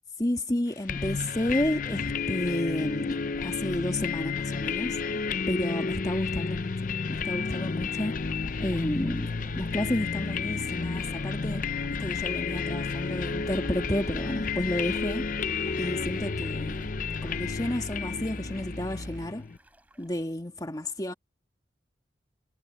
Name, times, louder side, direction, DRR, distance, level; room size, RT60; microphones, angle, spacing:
voice 1, 0.2-5.0 5.5-8.2 8.6-9.3 9.5-15.3 15.8-16.9 17.2-19.5 20.0-21.1, left 1 dB, 20° left, 1.7 m, -31 dB
sound 1, 0.9-19.6, left 5 dB, 45° left, 0.5 m, -32 dB
sound 2, 7.6-20.3, right 1 dB, 10° right, 5.8 m, -61 dB
sound 3, 8.2-19.3, equal, 60° right, 4.2 m, -41 dB
head